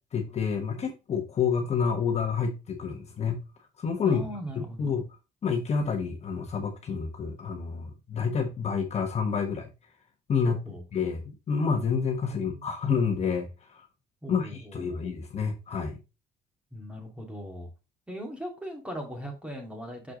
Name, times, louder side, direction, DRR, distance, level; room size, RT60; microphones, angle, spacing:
voice 1, 0.1-3.4 3.8-4.2 4.8-5.0 5.4-9.7 10.3-10.6 10.9-13.9 14.3-16.0, left 6 dB, 40° left, 1.3 m, -28 dB
voice 2, 4.0-4.9 10.4-10.8 12.3-12.7 14.2-15.1 16.7-17.7 18.1-20.1, equal, 5° right, 2.5 m, -39 dB
6.5 x 4.4 x 3.8 m
cardioid pair, 110°, 17 cm